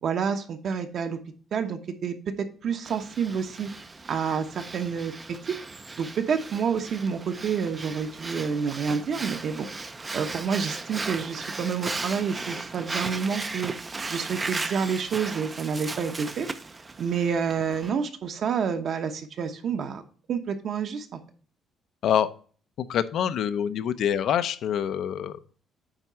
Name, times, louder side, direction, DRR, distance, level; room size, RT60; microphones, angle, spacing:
voice 1, 0.0-1.2 1.5-3.7 4.1-5.1 5.5-5.6 6.0-9.7 10.1-13.7 14.1-16.5 17.0-20.0 20.3-21.2, right 6 dB, 50° right, 7 dB, 1.0 m, -28 dB
Breathing, 2.8-17.9, right 3 dB, 20° right, 0.5 m, -36 dB
voice 2, 22.8-25.5, left 9 dB, 65° left, 11 dB, 0.6 m, -26 dB
8.9 x 3.7 x 5.6 m, 0.42 s
cardioid pair, 150°, 0 cm